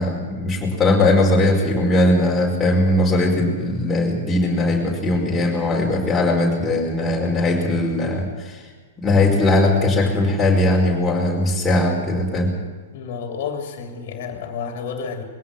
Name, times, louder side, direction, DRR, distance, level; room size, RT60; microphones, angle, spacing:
voice 1, 0.0-8.6 9.0-12.5, left 2 dB, 10° left, -4 dB, 5.1 m, -19 dB
voice 2, 12.9-15.2, left 6 dB, 50° left, 4 dB, 2.9 m, -30 dB
21.5 x 17.0 x 7.5 m, 1.4 s
figure-of-eight pair, 105°, 0 cm